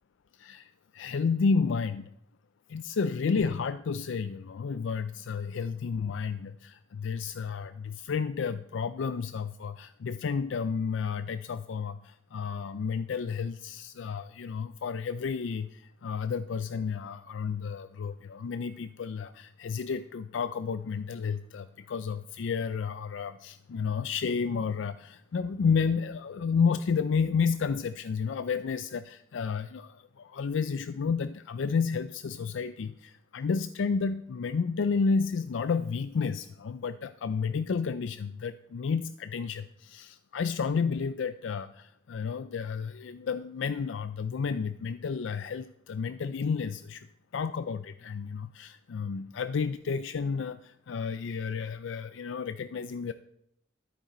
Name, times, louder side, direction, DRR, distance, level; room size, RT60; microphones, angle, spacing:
voice 1, 0.3-2.1 2.7-47.1 47.3-53.1, left 5 dB, 70° left, 12 dB, 0.4 m, -31 dB
13.5 x 8.7 x 3.9 m, 0.74 s
head